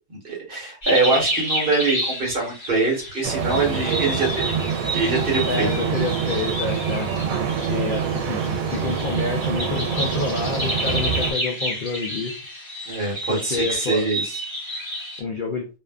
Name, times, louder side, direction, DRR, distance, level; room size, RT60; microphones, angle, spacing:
voice 1, 0.1-4.6 4.9-5.9 12.9-14.3, right 3 dB, 45° right, -2 dB, 1.2 m, -24 dB
sound 1, 0.8-15.2, equal, 25° left, 0.7 m, -30 dB
sound 2, 3.2-11.3, right 7 dB, 90° right, 1.0 m, -26 dB
voice 2, 5.5-7.1 7.7-12.3 13.3-14.1 15.2-15.7, left 4 dB, 70° left, 2 dB, 0.5 m, -28 dB
2.6 x 2.4 x 2.2 m, 0.31 s
omnidirectional pair, 1.4 m